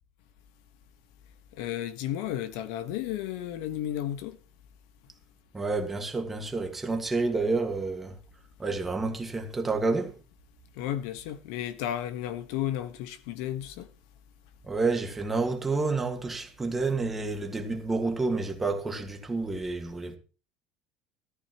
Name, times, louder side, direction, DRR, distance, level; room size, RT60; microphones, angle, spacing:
voice 1, 1.6-4.4 10.8-13.9, left 11 dB, 70° left, 1.2 m, -33 dB
voice 2, 5.5-8.1 8.6-10.1 14.7-20.2, right 3 dB, 10° right, 1.7 m, -29 dB
13.5 x 13.5 x 3.0 m
cardioid pair, 175°, 2 cm